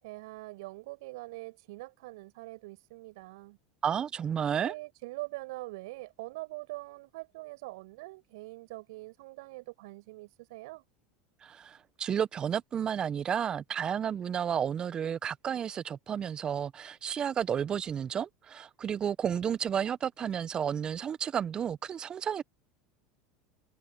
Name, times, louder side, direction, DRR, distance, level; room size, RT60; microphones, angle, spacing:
voice 1, 0.0-3.6 4.6-10.8, right 21 dB, 70° right, 6.8 m, -43 dB
voice 2, 3.8-4.7 11.4-22.4, right 8 dB, 35° right, 1.2 m, -32 dB
hypercardioid pair, 80°, 3 cm